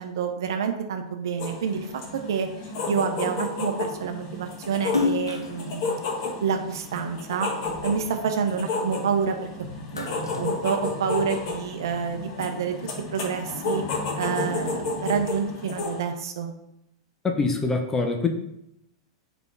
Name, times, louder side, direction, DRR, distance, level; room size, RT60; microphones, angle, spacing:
voice 1, 0.0-1.9 2.3-2.5 2.8-6.0 6.4-7.5 7.8-9.4 9.9-10.1 10.4-12.8 13.1-13.8 14.2-16.5, right 6 dB, 65° right, 6 dB, 0.8 m, -28 dB
sound 1, 1.4-16.0, left 3 dB, 50° left, 1.8 m, -32 dB
Splash splatter, 4.8-7.4 7.9-9.3 9.7-11.4, left 4 dB, 85° left, 0.8 m, -31 dB
voice 2, 17.2-18.3, left 3 dB, 20° left, 4 dB, 1.0 m, -24 dB
5.2 x 4.4 x 4.7 m, 0.80 s
figure-of-eight pair, 95°, 2 cm